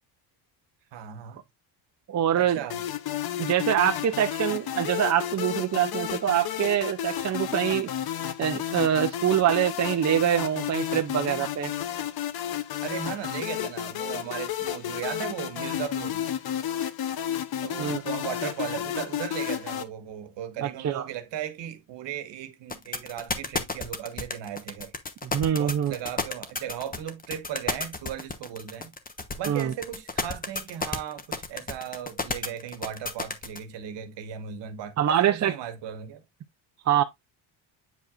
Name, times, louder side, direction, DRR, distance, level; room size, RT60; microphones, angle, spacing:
voice 1, 0.9-1.4 2.3-2.8 12.8-16.2 17.6-24.9 25.6-28.9 29.4-36.2, right 10 dB, 65° right, 1.3 m, -37 dB
voice 2, 2.1-2.6 3.4-7.9 8.4-11.7 17.8-18.0 20.6-21.1 25.2-25.9 29.5-29.7 35.0-35.5 36.9-37.0, right 10 dB, 35° right, 0.7 m, -24 dB
sound 1, 2.7-19.8, left 10 dB, 55° left, 0.9 m, -32 dB
sound 2, 22.7-33.6, left 3 dB, 20° left, 1.0 m, -31 dB
8.1 x 4.7 x 2.5 m
cardioid pair, 95°, 46 cm